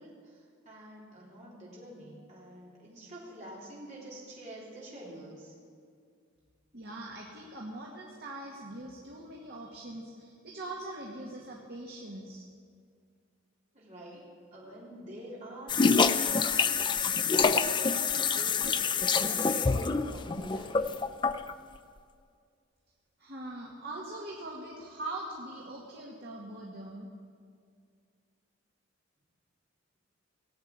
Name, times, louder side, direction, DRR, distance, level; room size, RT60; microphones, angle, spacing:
voice 1, 0.0-5.5 13.7-20.9, right 1 dB, 35° right, -6 dB, 3.6 m, -47 dB
voice 2, 6.7-12.5 23.2-27.1, right 1 dB, 50° right, -2 dB, 1.7 m, -42 dB
sound 1, 15.7-21.5, left 5 dB, 25° left, 0.4 m, -26 dB
18.5 x 7.9 x 8.8 m, 2.2 s
head